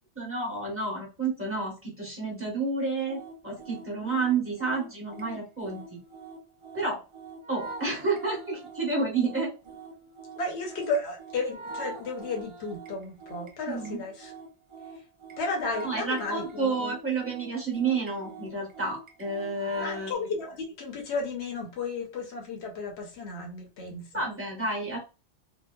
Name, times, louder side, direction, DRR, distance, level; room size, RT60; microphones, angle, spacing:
voice 1, 0.2-6.0 6.7-7.0 7.5-9.5 13.7-14.0 15.8-20.2 24.1-25.0, right 3 dB, 15° right, -4 dB, 1.0 m, -30 dB
sound 1, 3.1-20.1, right 3 dB, 50° right, 0.3 m, -44 dB
voice 2, 10.4-14.3 15.4-16.9 19.8-24.2, left 3 dB, 80° left, 2 dB, 1.0 m, -33 dB
2.8 x 2.0 x 2.2 m, 0.30 s
omnidirectional pair, 1.1 m